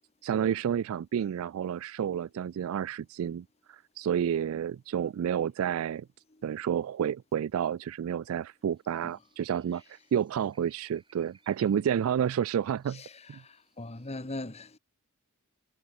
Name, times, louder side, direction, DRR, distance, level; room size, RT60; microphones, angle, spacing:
voice 1, 0.2-6.1 6.4-13.0 13.3-13.4, right 8 dB, 70° right, 0.3 m, -30 dB
sound 1, 8.8-14.2, right 5 dB, 25° right, 6.2 m, -66 dB
voice 2, 12.9-14.8, left 2 dB, 30° left, 1.4 m, -40 dB
head